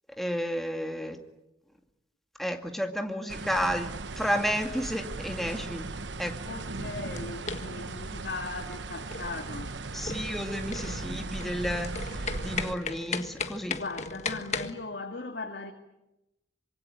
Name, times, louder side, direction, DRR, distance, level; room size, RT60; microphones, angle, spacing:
voice 1, 0.2-1.2 2.4-5.9 6.2-6.3 9.9-13.8, equal, ahead, 4 dB, 2.2 m, -32 dB
sound 1, 3.3-12.7, right 3 dB, 85° right, 1.1 m, -37 dB
voice 2, 6.5-10.2 13.8-15.7, left 3 dB, 65° left, 3 dB, 2.3 m, -39 dB
sound 2, 6.7-14.7, left 4 dB, 40° left, 1.6 m, -37 dB
25.0 x 23.5 x 9.3 m, 0.94 s
head